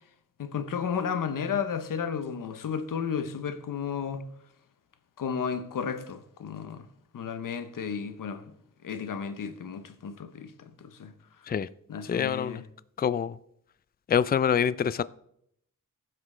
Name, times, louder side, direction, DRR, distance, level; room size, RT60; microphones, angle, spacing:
voice 1, 0.4-4.3 5.2-6.9 7.1-8.4 8.8-11.1 11.9-12.6, left 7 dB, 85° left, 0.9 m, -33 dB
voice 2, 12.1-12.6 13.0-13.4 14.1-15.0, left 8 dB, 30° left, 0.4 m, -25 dB
16.0 x 6.0 x 3.2 m
cardioid pair, 50°, 32 cm